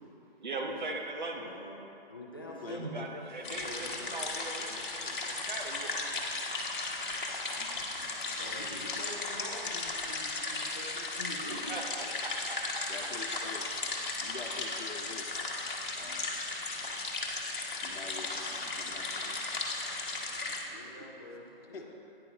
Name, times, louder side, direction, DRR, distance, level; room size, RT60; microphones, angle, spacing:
voice 1, 0.4-1.5 2.7-6.1 10.9-11.1 11.5-12.6, right 2 dB, 50° right, 2 dB, 1.0 m, -40 dB
voice 2, 1.3-1.8 2.1-3.0 3.4-4.3 8.4-12.1 19.1-19.3 20.1-20.2 20.5-21.8, left 1 dB, 25° left, -4 dB, 0.6 m, -46 dB
voice 3, 2.5-3.0 7.5-7.7 12.9-13.7 14.2-15.4 15.9-16.3 17.8-18.4 18.8-19.1 21.7-21.9, left 4 dB, 75° left, 3 dB, 1.0 m, -45 dB
voice 4, 3.3-3.7 7.5-8.7 18.2-19.1, right 3 dB, 85° right, 1 dB, 1.4 m, -51 dB
sound 1, 3.4-20.6, left 3 dB, 60° left, 1.2 m, -36 dB
9.8 x 8.8 x 2.9 m, 2.8 s
hypercardioid pair, 175°, 29 cm